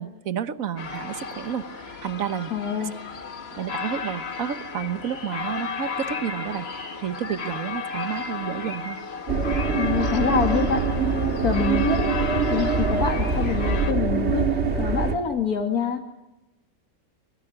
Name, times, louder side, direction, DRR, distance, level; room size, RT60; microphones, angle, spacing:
voice 1, 0.0-2.5 2.8-2.9 3.6-9.0, right 9 dB, 65° right, 12 dB, 1.5 m, -31 dB
sound 1, 0.8-13.9, left 5 dB, 45° left, 1.7 m, -34 dB
voice 2, 2.5-2.9 9.7-10.8 11.4-12.1 12.5-14.5 14.8-16.0, left 6 dB, 85° left, 4 dB, 2.6 m, -25 dB
sound 2, 9.3-15.2, right 4 dB, 50° right, 2.1 m, -24 dB
24.0 x 22.0 x 9.8 m, 0.95 s
omnidirectional pair, 1.5 m